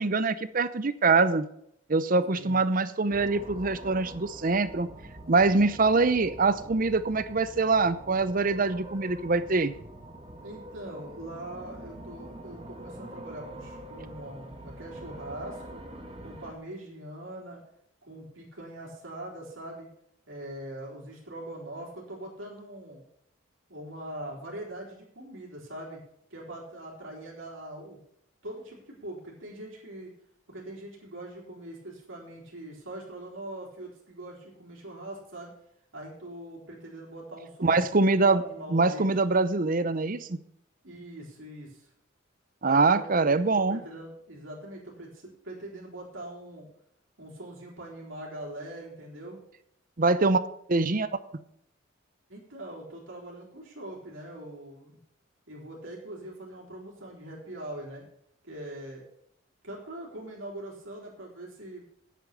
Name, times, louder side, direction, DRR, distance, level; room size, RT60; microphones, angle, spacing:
voice 1, 0.0-1.5 1.9-4.9 5.3-9.7 37.6-38.4 38.7-40.4 42.6-43.8 50.0-50.4 50.7-51.1, right 3 dB, 45° right, 14 dB, 0.7 m, -24 dB
sound 1, 3.1-16.5, right 1 dB, 25° right, 1.4 m, -45 dB
voice 2, 10.4-15.8 16.2-17.6 18.0-19.9 20.3-23.0 23.7-26.0 26.3-28.0 28.4-30.1 30.5-35.5 35.9-39.2 40.8-41.9 42.7-46.7 47.2-49.4 52.3-55.0 55.5-58.1 58.4-59.0 59.6-61.8, right 1 dB, 75° right, -3 dB, 3.8 m, -42 dB
9.5 x 8.6 x 6.7 m, 0.71 s
head